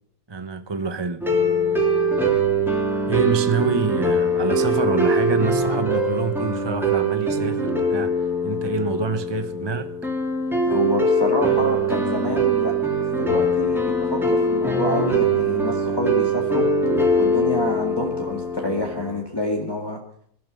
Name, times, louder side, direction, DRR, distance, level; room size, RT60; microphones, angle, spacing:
voice 1, 0.3-1.3 3.0-8.1 8.4-9.9, right 4 dB, 25° right, 0.6 m, -26 dB
sound 1, 1.2-19.2, right 1 dB, ahead, 3.0 m, -22 dB
voice 2, 10.7-16.7 17.2-20.0, left 1 dB, 15° left, 2.0 m, -27 dB
21.5 x 13.0 x 5.4 m
omnidirectional pair, 1.5 m